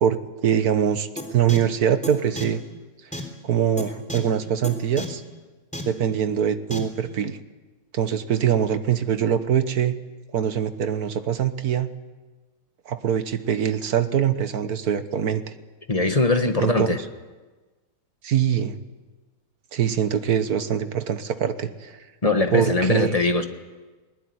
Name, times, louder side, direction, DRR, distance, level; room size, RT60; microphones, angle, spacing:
voice 1, 0.4-2.6 3.4-5.2 5.9-7.4 7.9-10.0 10.3-11.9 12.9-15.4 16.6-16.9 18.2-18.8 19.7-22.0 22.5-23.1, right 8 dB, 55° right, 11 dB, 1.5 m, -23 dB
sound 1, 1.2-1.3 1.5-1.6 2.0-2.1 2.4-2.5 3.1-3.2 3.8-3.9 4.1-4.2 4.6-4.7 5.0-5.1 5.7-5.8 6.7-6.8, left 1 dB, 5° left, 3.2 m, -31 dB
voice 2, 15.9-17.0 22.2-23.5, left 2 dB, 20° left, 6 dB, 1.3 m, -21 dB
20.5 x 20.0 x 9.6 m, 1.3 s
omnidirectional pair, 2.3 m